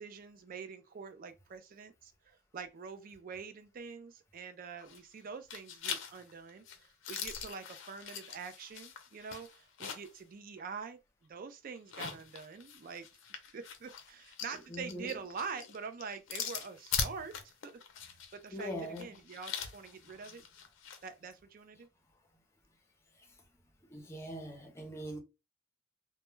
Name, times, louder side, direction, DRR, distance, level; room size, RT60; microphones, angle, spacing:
voice 1, 0.0-11.0 11.3-13.1 13.5-17.3 17.6-17.8 18.3-20.4 21.0-21.9, right 5 dB, 45° right, 0.4 m, -45 dB
sound 1, 4.8-5.2 5.5-10.2 10.6-10.7 11.7-21.0, left 7 dB, 65° left, 0.5 m, -42 dB
voice 2, 14.7-15.1 18.5-19.1 23.9-25.2, equal, 15° left, 0.5 m, -41 dB
2.1 x 2.1 x 3.0 m
head